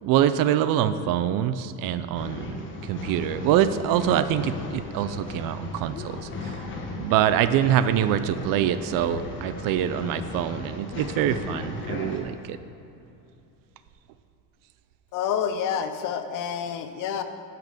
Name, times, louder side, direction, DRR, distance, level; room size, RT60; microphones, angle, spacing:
voice 1, 0.0-6.6 6.9-12.6, right 10 dB, 55° right, 12 dB, 0.5 m, -25 dB
Male speech man speaking / Chatter / Rattle, 2.1-12.2, left 3 dB, 30° left, 1.2 m, -36 dB
voice 2, 15.1-17.2, left 8 dB, 50° left, 9 dB, 0.7 m, -28 dB
10.5 x 5.9 x 5.1 m, 2.9 s
cardioid pair, 150°, 41 cm